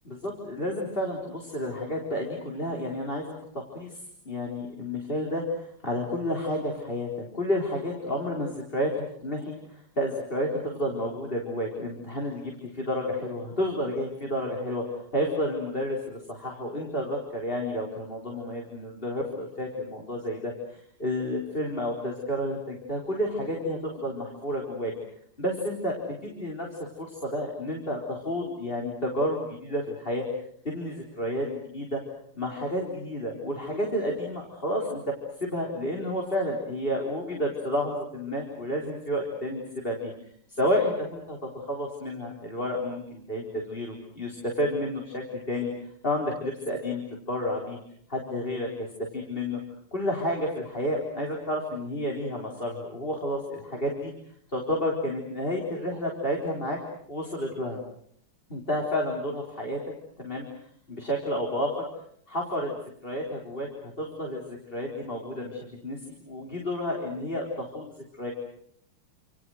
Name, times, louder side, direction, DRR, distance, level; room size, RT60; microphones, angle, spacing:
voice 1, 0.0-4.0 4.2-14.8 15.1-24.9 25.4-30.2 30.6-32.0 32.3-40.1 40.5-45.7 46.0-47.0 47.3-47.8 48.1-48.9 49.1-49.6 49.9-54.1 54.5-56.8 57.1-57.8 58.5-59.8 60.2-60.5 60.9-61.9 62.3-62.8 63.0-68.3, left 1 dB, 25° left, -1 dB, 4.3 m, -31 dB
29.0 x 28.5 x 6.4 m, 0.65 s
omnidirectional pair, 2.4 m